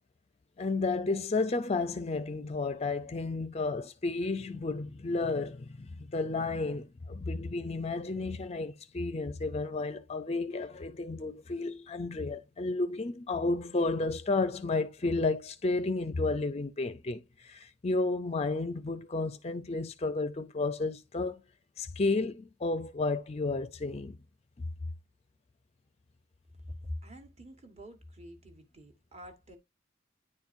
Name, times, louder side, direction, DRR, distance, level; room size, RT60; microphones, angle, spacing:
voice 1, 0.6-21.4 21.8-24.2 24.6-24.7, left 3 dB, 30° left, 0.5 m, -32 dB
voice 2, 26.7-29.6, left 1 dB, 30° right, 1.4 m, -45 dB
9.8 x 4.4 x 2.5 m
head